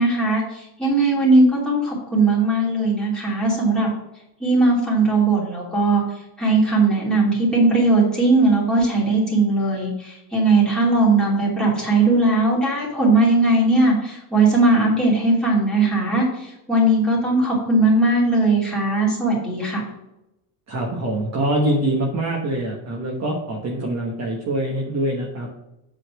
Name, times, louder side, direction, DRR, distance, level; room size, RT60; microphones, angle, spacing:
voice 1, 0.0-3.9 4.4-6.0 6.4-19.8, right 2 dB, ahead, -6 dB, 2.8 m, -19 dB
voice 2, 20.7-25.5, right 1 dB, 35° right, -1 dB, 1.2 m, -24 dB
8.2 x 4.2 x 6.1 m, 0.88 s
cardioid pair, 165°, 48 cm